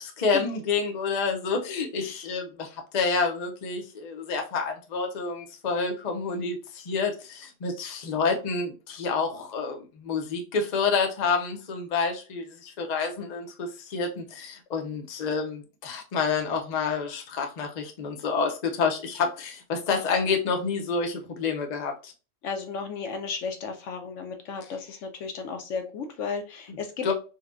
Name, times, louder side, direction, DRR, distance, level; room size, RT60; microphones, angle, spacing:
voice 1, 0.0-22.1 27.0-27.1, left 5 dB, 45° left, 0.6 m, -28 dB
voice 2, 22.4-27.1, left 5 dB, 75° left, 1.0 m, -34 dB
4.0 x 2.2 x 2.4 m
omnidirectional pair, 1.3 m